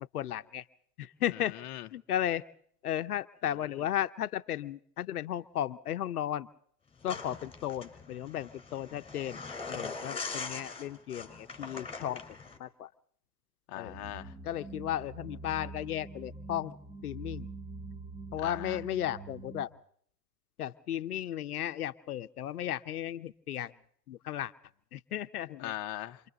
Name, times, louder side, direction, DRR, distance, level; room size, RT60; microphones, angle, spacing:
voice 1, 0.1-0.6 1.0-1.6 1.9-2.4 2.8-6.5 7.0-9.4 9.7-12.2 12.6-12.9 13.7-13.9 14.4-16.7 17.0-17.5 18.3-19.7 20.6-23.7 24.1-24.5 24.9-25.7, left 11 dB, 70° left, 0.8 m, -35 dB
voice 2, 1.3-1.9 13.7-14.3 18.4-18.8 25.6-26.2, left 14 dB, 35° left, 0.8 m, -40 dB
sound 1, 7.0-12.6, left 4 dB, 10° left, 4.1 m, -41 dB
sound 2, 13.9-19.7, right 3 dB, 10° right, 1.4 m, -45 dB
28.5 x 25.5 x 4.0 m
figure-of-eight pair, 95°, 48 cm